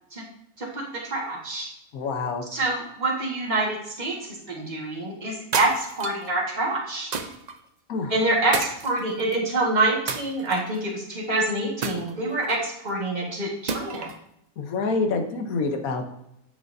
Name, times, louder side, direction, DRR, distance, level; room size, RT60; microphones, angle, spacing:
voice 1, 0.6-1.7 2.5-7.1 8.1-14.1, right 2 dB, 30° right, -2 dB, 1.7 m, -26 dB
voice 2, 1.9-2.4 7.9-8.1 14.6-16.1, left 3 dB, 70° left, 5 dB, 1.4 m, -27 dB
sound 1, 5.5-6.3 7.1-7.6 8.5-9.4 10.1-10.8 11.8-12.7 13.7-14.2, right 5 dB, 60° right, 0.4 m, -31 dB
10.5 x 6.8 x 2.7 m, 0.80 s
omnidirectional pair, 1.6 m